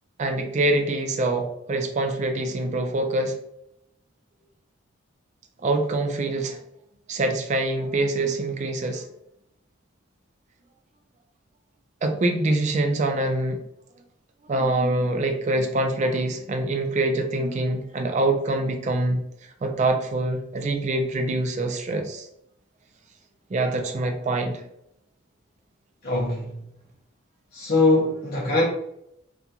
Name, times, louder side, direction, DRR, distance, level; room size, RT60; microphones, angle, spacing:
voice 1, 0.2-3.4 5.6-6.6 7.1-9.0 12.0-13.6 14.5-19.2 19.6-22.3 23.5-24.6, right 2 dB, 35° right, 0.3 m, -25 dB
voice 2, 26.0-26.6 27.5-28.6, left 2 dB, 50° left, 0.6 m, -22 dB
2.8 x 2.5 x 2.3 m
head